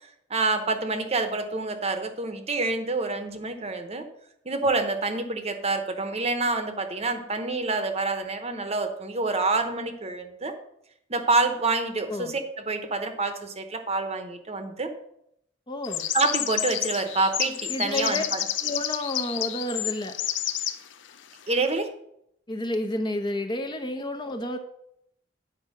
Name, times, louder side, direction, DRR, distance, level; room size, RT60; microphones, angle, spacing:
voice 1, 0.3-4.0 4.4-10.5 11.1-14.9 16.1-18.4 21.5-21.9, right 3 dB, 35° right, 7 dB, 0.9 m, -27 dB
voice 2, 15.7-16.1 17.7-18.2 18.6-20.2 22.5-24.6, left 1 dB, 25° left, 6 dB, 0.7 m, -30 dB
sound 1, 15.8-20.8, left 11 dB, 75° left, 0.6 m, -30 dB
9.1 x 4.7 x 6.3 m, 0.76 s
head